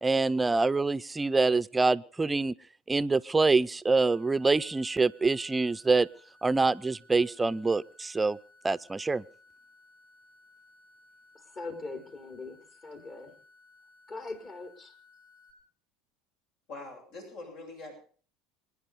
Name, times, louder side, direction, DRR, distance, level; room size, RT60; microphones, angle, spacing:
voice 1, 0.0-2.5 2.9-6.1 6.4-8.4 8.6-9.2, right 3 dB, 15° right, 17 dB, 0.7 m, -25 dB
sound 1, 4.1-15.5, left 2 dB, 90° left, 6.8 m, -60 dB
voice 2, 11.3-13.3 14.1-14.9, left 3 dB, 40° left, 6 dB, 4.7 m, -41 dB
voice 3, 16.7-17.9, left 2 dB, 65° left, 2 dB, 7.8 m, -43 dB
26.5 x 10.0 x 5.3 m, 0.43 s
hypercardioid pair, 75°, 0 cm